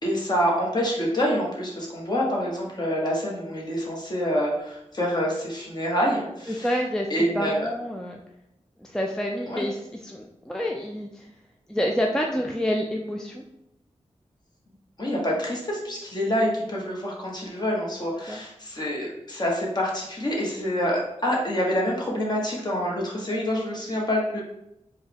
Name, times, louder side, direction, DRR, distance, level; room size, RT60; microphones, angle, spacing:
voice 1, 0.0-6.7 7.1-7.6 9.5-9.6 15.0-24.4, equal, 35° left, -3 dB, 1.2 m, -26 dB
voice 2, 6.5-8.2 8.8-11.3 11.7-13.4 18.3-18.4, equal, 5° left, 0 dB, 0.4 m, -28 dB
4.4 x 2.3 x 3.4 m, 0.84 s
wide cardioid pair, 80°, 12 cm